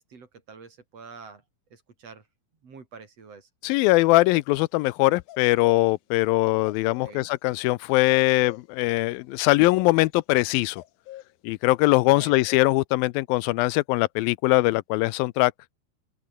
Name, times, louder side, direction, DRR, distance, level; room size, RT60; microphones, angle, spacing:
voice 1, 0.0-1.4 1.7-2.3 2.6-3.5 7.0-7.3 12.0-12.4, right 5 dB, 45° right, 4.5 m, -46 dB
voice 2, 3.6-10.8 11.4-15.5, left 20 dB, 85° left, 2.4 m, -21 dB
sound 1, 4.2-4.5 5.3-7.2 8.1-8.6 9.4-10.1 10.5-11.3 11.8-11.9 12.2-12.6, left 14 dB, 70° left, 2.2 m, -43 dB
open air
omnidirectional pair, 4.1 m